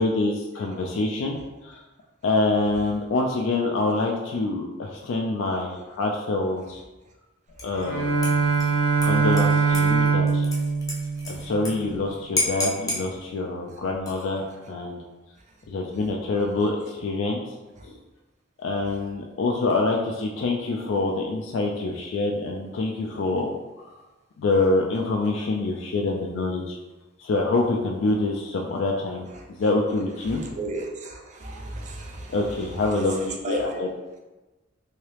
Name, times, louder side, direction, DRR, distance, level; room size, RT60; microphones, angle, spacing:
voice 1, 0.0-1.8 2.2-6.8 7.6-8.4 9.0-10.5 11.3-15.0 15.7-17.4 17.8-18.0 18.6-23.5 23.8-23.9 24.4-26.8 27.2-30.4 32.3-33.9, left 2 dB, 65° left, 0 dB, 0.3 m, -26 dB
Dishes pots and pans / Liquid, 7.6-7.9 8.2-11.7 12.0-12.1 12.4-13.0 13.9-14.4, left 2 dB, 20° left, 0.6 m, -31 dB
Bowed string instrument, 7.7-11.9, right 4 dB, 90° right, 0.6 m, -22 dB
voice 2, 30.2-33.8, right 2 dB, 35° right, 2 dB, 0.5 m, -34 dB
3.2 x 2.7 x 3.0 m, 1.1 s
head